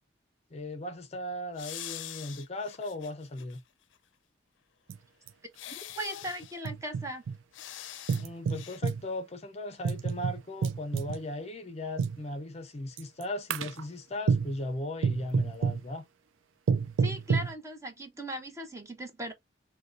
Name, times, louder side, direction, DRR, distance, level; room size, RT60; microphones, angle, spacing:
voice 1, 0.5-3.6 8.2-16.0, left 1 dB, 35° left, 0.6 m, -37 dB
sound 1, 1.6-3.6 4.0-4.1 5.5-6.6 7.5-8.3 8.5-8.8, left 12 dB, 80° left, 0.5 m, -43 dB
sound 2, 4.9-5.0 5.3-5.4 6.2-7.4 8.1-9.0 9.8-11.2 12.0-12.2 13.0-13.2 13.5-13.8 14.3-14.6 15.0-15.8 16.7-17.5, right 5 dB, 85° right, 0.4 m, -29 dB
voice 2, 5.7-7.2 17.0-19.3, equal, 15° right, 0.9 m, -38 dB
6.2 x 2.2 x 2.5 m
head